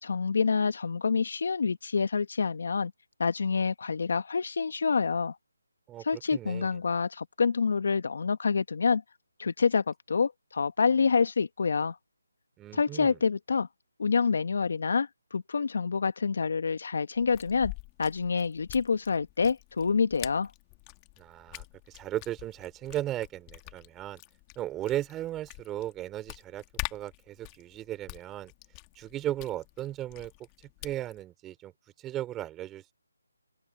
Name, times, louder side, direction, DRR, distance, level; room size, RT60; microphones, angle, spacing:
voice 1, 0.0-2.9 3.2-5.3 6.0-9.0 9.4-12.0 12.7-13.7 14.0-17.7 18.0-20.5, left 5 dB, 60° left, 1.6 m, -27 dB
voice 2, 6.3-6.7 12.6-13.2 21.2-24.2 24.5-26.6 26.9-28.5 28.9-30.3 30.8-31.7 32.0-32.9, right 13 dB, 10° right, 3.3 m, -36 dB
sound 1, 17.1-31.2, left 27 dB, 20° left, 1.8 m, -45 dB
open air
figure-of-eight pair, 160°, 0 cm